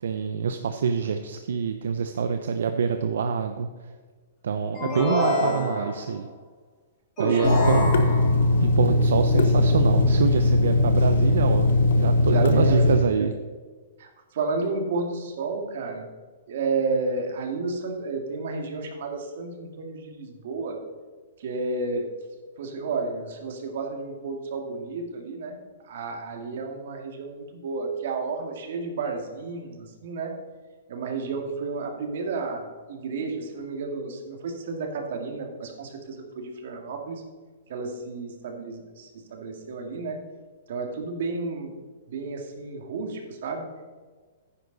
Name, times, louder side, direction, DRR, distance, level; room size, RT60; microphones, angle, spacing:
voice 1, 0.0-3.7 4.4-6.3 7.2-7.8 8.6-11.7 11.9-13.3, right 6 dB, 80° right, 8 dB, 0.7 m, -26 dB
sound 1, 4.7-6.1 7.2-8.5, left 1 dB, 15° left, 3.7 m, -27 dB
voice 2, 5.4-5.9 7.2-7.6 12.2-13.3 14.0-16.1 16.5-20.8 21.4-22.1 22.6-25.6 25.9-30.3 30.9-37.2 37.7-40.2 40.7-41.7 42.1-43.7, right 4 dB, 60° right, 3 dB, 2.1 m, -31 dB
Water tap faucet / Sink (filling or washing), 7.4-13.0, left 2 dB, 70° left, 1.1 m, -20 dB
9.9 x 9.9 x 4.0 m, 1.4 s
hypercardioid pair, 165°, 0 cm